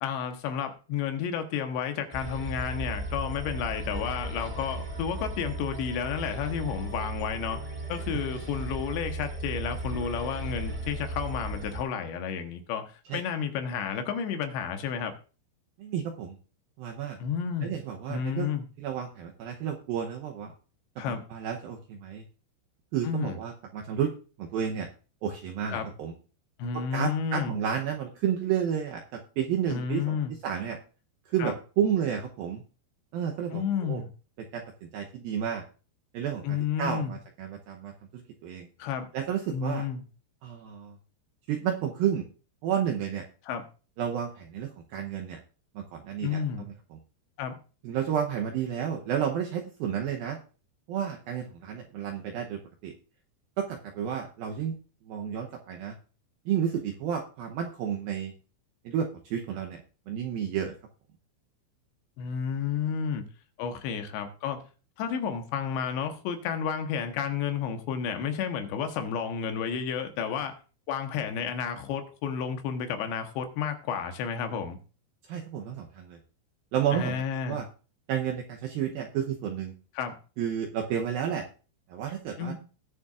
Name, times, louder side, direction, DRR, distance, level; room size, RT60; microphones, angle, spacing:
voice 1, 0.0-7.6 7.9-15.1 17.2-17.7 18.1-18.7 21.0-21.2 23.0-23.4 25.7-25.9 26.6-27.6 29.7-30.3 31.4-31.5 33.5-34.1 36.4-37.2 38.8-39.1 39.5-40.0 43.5-43.6 46.2-46.7 47.4-47.6 62.2-63.3 63.6-64.6 65.0-70.6 70.9-74.8 76.9-77.6 80.0-80.2 82.4-82.5, left 7 dB, 80° left, 3.2 m, -31 dB
sound 1, 2.1-11.8, right 2 dB, 25° right, 0.9 m, -36 dB
voice 2, 15.8-16.4 16.8-17.2 17.6-18.5 18.8-20.5 21.1-22.2 22.9-24.1 24.4-24.9 25.2-26.1 26.7-30.2 30.4-30.8 31.3-32.6 33.1-34.0 34.5-35.6 36.1-38.7 39.1-39.8 40.4-41.0 41.5-42.3 42.6-43.2 44.0-45.4 45.8-47.0 47.8-50.4 50.9-52.9 53.6-54.8 55.1-56.0 56.5-58.3 58.9-59.8 60.1-60.8 75.3-76.2 76.7-77.7 78.1-79.7 80.4-81.5 81.9-82.5, right 8 dB, 75° right, 2.2 m, -31 dB
20.0 x 6.9 x 2.4 m
omnidirectional pair, 5.2 m